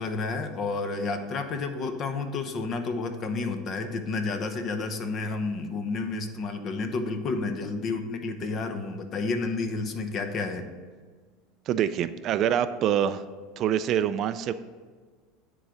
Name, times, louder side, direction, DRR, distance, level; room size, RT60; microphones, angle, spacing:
voice 1, 0.0-10.7, left 3 dB, 40° left, 7 dB, 0.9 m, -30 dB
voice 2, 11.7-13.2 13.6-14.5, right 9 dB, 45° right, 12 dB, 0.4 m, -25 dB
9.7 x 3.9 x 6.3 m, 1.5 s
supercardioid pair, 120°, 0 cm